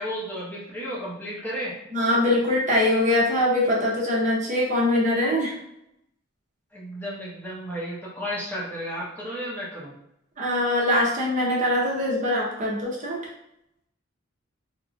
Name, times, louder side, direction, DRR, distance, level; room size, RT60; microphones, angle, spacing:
voice 1, 0.0-1.7 6.7-9.9, equal, 10° left, -6 dB, 0.6 m, -33 dB
voice 2, 1.9-5.5 10.4-13.2, left 1 dB, 40° right, -4 dB, 0.7 m, -23 dB
2.9 x 2.4 x 2.5 m, 0.80 s
head